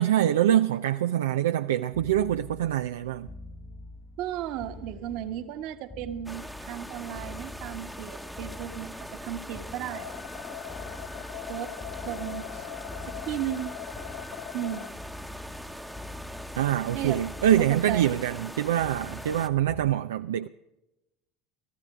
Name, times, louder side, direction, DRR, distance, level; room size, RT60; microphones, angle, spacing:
voice 1, 0.0-3.3 16.6-20.5, right 11 dB, 80° right, 0.4 m, -25 dB
sound 1, 1.9-20.0, left 2 dB, 20° left, 1.8 m, -45 dB
voice 2, 4.2-10.1 11.5-11.7 12.1-12.6 13.1-13.7 14.5-14.9 16.9-17.2 17.7-18.0, right 11 dB, 60° right, 1.4 m, -35 dB
sound 2, 6.3-19.5, equal, ahead, 1.1 m, -42 dB
sound 3, 9.9-14.9, left 14 dB, 60° left, 1.0 m, -41 dB
17.5 x 14.0 x 4.9 m
hypercardioid pair, 75°, 0 cm